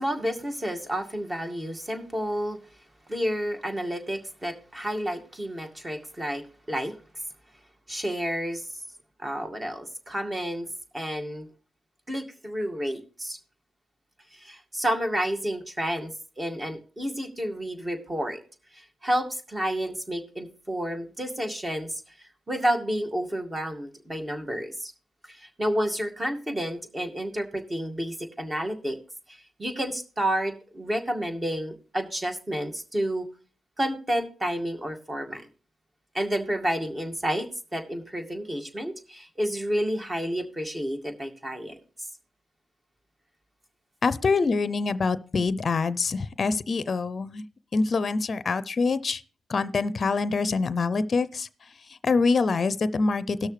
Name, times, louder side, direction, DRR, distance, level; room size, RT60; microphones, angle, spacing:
voice 1, 0.0-2.6 3.1-7.0 7.9-8.7 9.2-10.7 10.9-11.5 12.1-13.4 14.3-18.4 18.7-22.0 22.5-24.9 25.3-29.0 29.3-33.3 33.8-35.4 36.1-37.5 37.7-41.8, equal, 25° right, 4 dB, 2.1 m, -30 dB
voice 2, 44.0-47.4 47.7-49.2 49.5-51.5 52.0-53.5, left 4 dB, 50° left, 16 dB, 0.6 m, -25 dB
18.0 x 6.4 x 3.2 m, 0.37 s
supercardioid pair, 55°, 0 cm